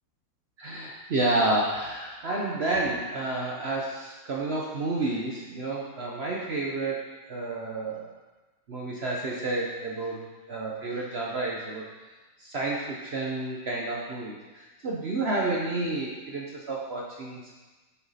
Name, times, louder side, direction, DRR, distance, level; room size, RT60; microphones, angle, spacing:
voice 1, 0.6-8.1 8.7-11.8 12.4-17.5, right 2 dB, 50° right, -2 dB, 0.8 m, -30 dB
7.7 x 6.0 x 4.1 m, 1.2 s
omnidirectional pair, 2.0 m